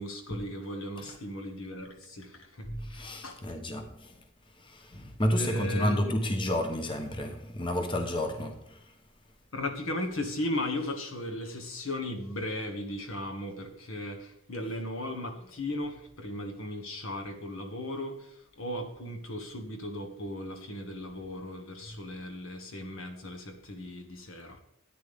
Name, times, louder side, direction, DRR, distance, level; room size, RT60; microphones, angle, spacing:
voice 1, 0.0-3.6 5.4-6.2 9.5-24.6, left 1 dB, 75° left, 1.8 m, -36 dB
voice 2, 2.6-4.2 4.6-8.9 14.6-14.8, left 1 dB, 25° left, 1.0 m, -31 dB
13.5 x 9.4 x 3.5 m
head